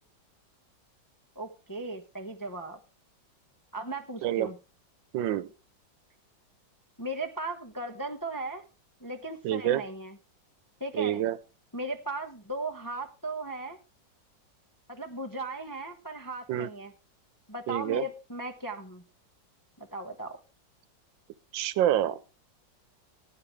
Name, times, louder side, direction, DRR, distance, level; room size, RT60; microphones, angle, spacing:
voice 1, 1.3-2.8 3.7-4.6 7.0-8.6 9.0-10.2 10.8-11.2 11.7-13.8 14.9-16.9 17.5-19.0 19.8-20.4, right 2 dB, 20° left, 3 dB, 0.6 m, -37 dB
voice 2, 5.1-5.5 9.4-9.8 11.0-11.4 16.5-16.7 17.7-18.0 21.5-22.2, right 12 dB, 90° right, 17 dB, 1.5 m, -27 dB
16.0 x 8.8 x 3.3 m, 0.30 s
omnidirectional pair, 2.0 m